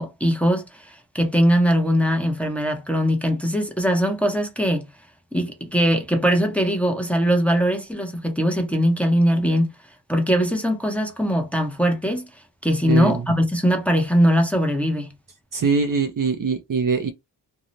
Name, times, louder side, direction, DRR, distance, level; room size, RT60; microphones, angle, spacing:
voice 1, 0.0-4.9 5.3-9.7 10.1-12.3 12.6-15.1, equal, 5° left, 0.6 m, -21 dB
voice 2, 12.9-13.2 15.5-17.1, right 5 dB, 50° right, 0.5 m, -22 dB
2.7 x 2.0 x 3.0 m
wide cardioid pair, 100°, 43 cm